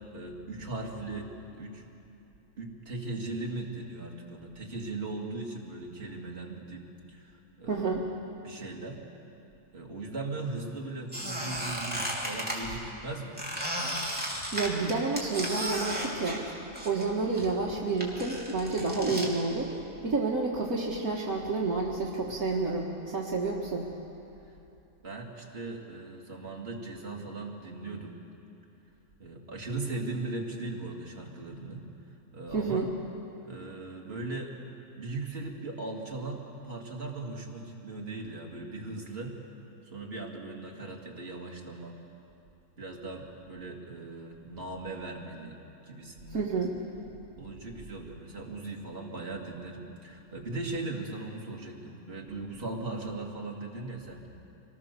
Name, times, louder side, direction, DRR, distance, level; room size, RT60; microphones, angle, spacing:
voice 1, 0.1-1.3 1.5-1.8 2.6-7.9 8.4-9.0 9.7-13.4 25.0-28.2 29.2-31.8 32.3-32.9 33.4-34.5 35.0-39.4 39.9-42.0 42.8-45.6 45.9-46.4 47.4-54.2, right 2 dB, 40° right, -1 dB, 2.5 m, -38 dB
voice 2, 7.7-8.0 12.5-12.6 14.5-16.4 16.8-19.7 20.0-23.9 32.5-32.9 46.3-46.8, right 3 dB, 65° right, -2 dB, 1.9 m, -29 dB
Squeak, 11.1-12.6 13.4-17.1 17.3-19.3, equal, 5° right, 3.1 m, -34 dB
25.0 x 19.0 x 6.8 m, 2.8 s
omnidirectional pair, 1.6 m